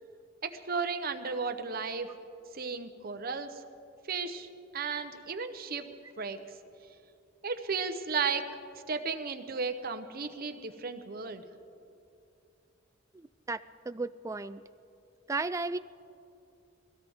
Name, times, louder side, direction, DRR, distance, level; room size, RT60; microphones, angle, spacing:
voice 1, 0.4-2.1 2.5-3.6 4.1-4.5 4.7-5.9 6.2-6.4 7.4-8.5 8.9-11.4, right 5 dB, 50° right, 8 dB, 0.9 m, -34 dB
voice 2, 13.1-14.6 15.3-15.8, right 3 dB, 15° right, 12 dB, 0.3 m, -35 dB
22.5 x 16.5 x 3.6 m, 2.6 s
head